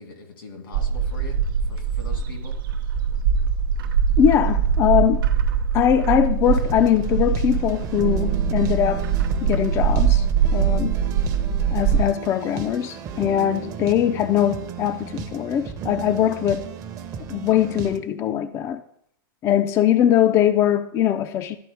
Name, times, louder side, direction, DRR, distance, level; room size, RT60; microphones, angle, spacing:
voice 1, 0.0-2.5, left 2 dB, 90° left, 3 dB, 2.2 m, -42 dB
Bird, 0.7-12.0, right 7 dB, 70° right, 0.7 m, -22 dB
voice 2, 4.2-5.3 5.7-9.1 9.4-10.3 10.5-11.0 11.7-16.7 17.3-18.8 19.4-21.6, left 10 dB, 25° left, 10 dB, 0.3 m, -21 dB
sound 1, 6.4-18.0, right 8 dB, 30° right, 0.7 m, -34 dB
12.0 x 4.2 x 3.3 m, 0.69 s
hypercardioid pair, 135°, 11 cm